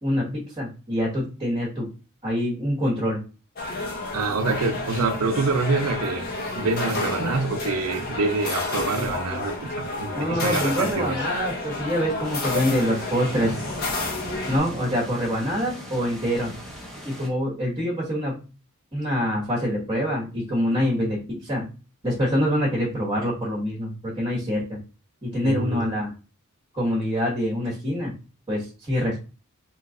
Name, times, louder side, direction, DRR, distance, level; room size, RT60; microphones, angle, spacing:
voice 1, 0.0-1.9 2.2-3.2 10.2-13.6 14.5-16.5 17.0-18.4 18.9-21.7 22.0-24.8 25.2-26.1 26.7-28.2 28.5-29.2, equal, 25° right, 1.0 m, -25 dB
sound 1, 3.6-14.6, left 2 dB, 45° left, 0.8 m, -30 dB
voice 2, 4.1-11.2 25.4-26.0, right 3 dB, 75° right, 0.5 m, -26 dB
sound 2, 12.2-17.3, equal, ahead, 0.7 m, -38 dB
3.0 x 2.3 x 3.6 m
head